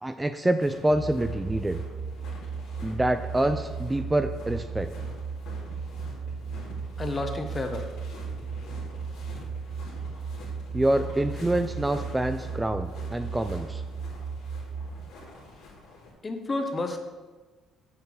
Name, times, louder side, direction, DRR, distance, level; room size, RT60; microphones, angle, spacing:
voice 1, 0.0-1.8 2.8-4.9 10.7-13.8, right 1 dB, 10° right, 9 dB, 0.4 m, -26 dB
sound 1, 0.6-16.1, left 2 dB, 75° left, 3.0 m, -46 dB
sound 2, 0.9-14.9, right 5 dB, 75° right, 2.9 m, -36 dB
voice 2, 7.0-7.9 16.2-17.0, left 2 dB, 25° left, 5 dB, 1.2 m, -30 dB
8.6 x 4.6 x 7.0 m, 1.3 s
supercardioid pair, 85°, 0 cm